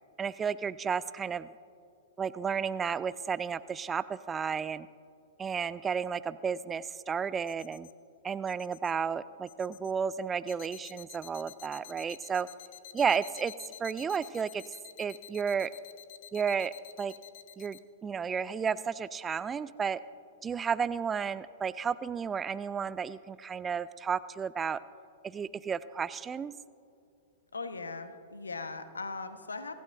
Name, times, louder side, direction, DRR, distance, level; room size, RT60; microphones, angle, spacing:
voice 1, 0.2-1.5 2.2-4.9 5.4-7.9 8.2-12.5 12.9-13.5 13.8-14.6 15.0-15.7 16.3-17.1 17.6-20.0 20.4-24.8 25.2-26.5, right 6 dB, 20° right, 16 dB, 0.4 m, -32 dB
sound 1, 7.5-7.9 8.5-8.9 9.5-9.9 10.5-17.8, left 11 dB, 50° left, 0.9 m, -49 dB
voice 2, 27.5-29.7, left 3 dB, 80° left, 9 dB, 1.1 m, -39 dB
25.0 x 15.5 x 2.6 m, 2.5 s
figure-of-eight pair, 105°, 0 cm